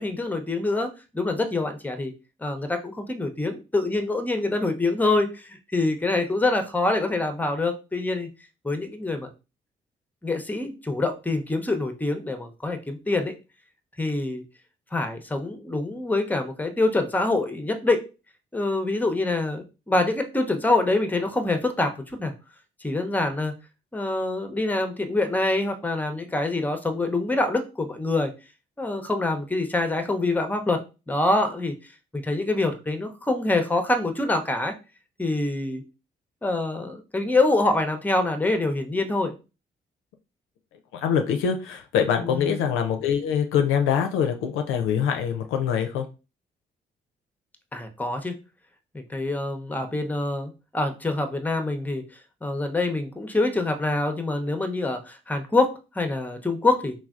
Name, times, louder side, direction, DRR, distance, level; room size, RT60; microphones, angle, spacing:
voice 1, 0.0-2.1 2.4-8.3 8.6-9.3 10.2-13.4 14.0-14.4 14.9-18.0 18.5-22.3 22.8-23.5 23.9-28.3 28.8-30.8 31.1-31.7 32.1-34.7 35.2-35.8 36.4-39.3 42.2-42.7 47.7-48.4 48.9-52.0 52.4-56.9, left 2 dB, 10° left, 0.6 m, -25 dB
voice 2, 40.9-46.1, left 8 dB, 75° left, 0.4 m, -24 dB
3.2 x 2.2 x 2.4 m
hypercardioid pair, 45°, 21 cm